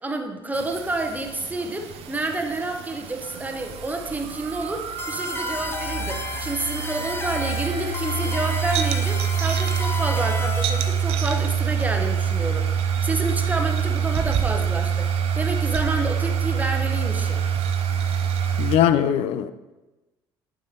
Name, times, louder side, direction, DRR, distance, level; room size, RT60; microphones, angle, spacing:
voice 1, 0.0-17.4, right 2 dB, 15° right, 0.9 m, -29 dB
sound 1, 0.5-18.8, right 7 dB, 60° right, 0.5 m, -26 dB
sound 2, 5.0-10.9, left 3 dB, 20° left, 0.8 m, -33 dB
voice 2, 18.6-19.5, left 10 dB, 65° left, 0.4 m, -20 dB
7.1 x 4.7 x 3.0 m
hypercardioid pair, 65°, 11 cm